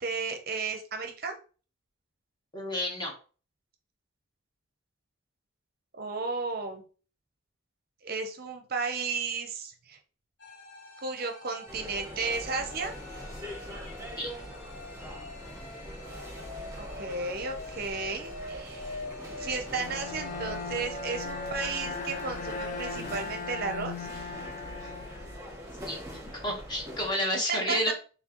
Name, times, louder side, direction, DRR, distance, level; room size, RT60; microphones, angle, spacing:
voice 1, 0.0-1.4 6.0-6.8 8.0-10.0 11.0-13.0 16.8-19.0 19.4-24.1 27.5-27.9, right 4 dB, 45° right, 5 dB, 0.6 m, -34 dB
voice 2, 2.5-3.1 14.2-14.3 25.8-26.0 26.4-27.9, equal, 20° left, 0 dB, 0.9 m, -30 dB
sound 1, 10.4-23.0, left 2 dB, 65° left, 1.0 m, -44 dB
sound 2, 11.7-27.1, equal, 15° right, 0.9 m, -43 dB
Bowed string instrument, 19.8-25.7, left 4 dB, 40° left, 0.3 m, -39 dB
4.5 x 3.3 x 2.9 m, 0.37 s
head